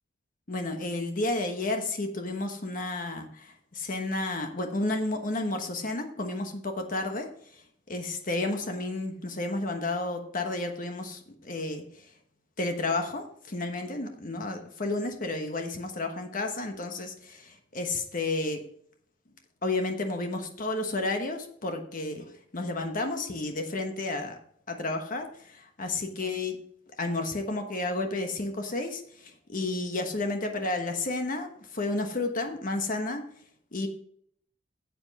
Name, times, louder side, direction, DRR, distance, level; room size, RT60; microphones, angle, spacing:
voice 1, 0.5-7.3 7.9-11.8 12.6-18.6 19.6-24.4 24.7-26.6 27.0-33.2 33.7-33.9, left 2 dB, 45° left, 4 dB, 1.2 m, -31 dB
9.8 x 7.9 x 4.1 m, 0.63 s
head